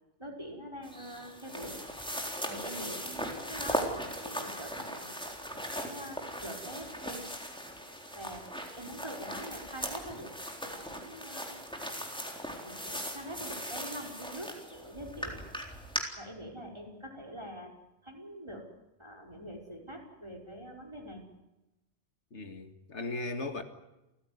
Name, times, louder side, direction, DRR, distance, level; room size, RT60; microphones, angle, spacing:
voice 1, 0.2-1.8 2.4-4.0 4.2-5.2 5.5-7.2 8.2-8.4 8.8-10.3 10.6-11.5 12.6-15.4 16.2-17.7 18.0-18.6 19.0-21.2, equal, 25° right, 0 dB, 5.4 m, -44 dB
sound 1, 0.8-16.0, equal, 5° left, 3.9 m, -39 dB
voice 2, 22.3-23.6, left 2 dB, 85° left, 7 dB, 2.4 m, -37 dB
29.5 x 15.5 x 9.7 m, 0.96 s
omnidirectional pair, 1.1 m